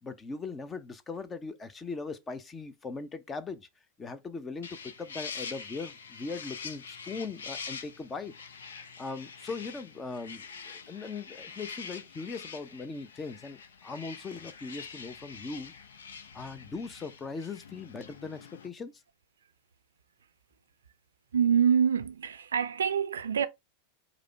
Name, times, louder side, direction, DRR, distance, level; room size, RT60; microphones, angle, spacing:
voice 1, 0.0-3.7 4.0-8.3 9.0-10.4 10.9-15.7 16.3-18.9, left 4 dB, 20° left, 0.6 m, -39 dB
sound 1, 4.6-18.7, left 5 dB, 65° left, 0.6 m, -45 dB
voice 2, 21.3-23.5, right 7 dB, 65° right, 0.5 m, -25 dB
4.9 x 2.1 x 4.5 m
figure-of-eight pair, 90°, 0 cm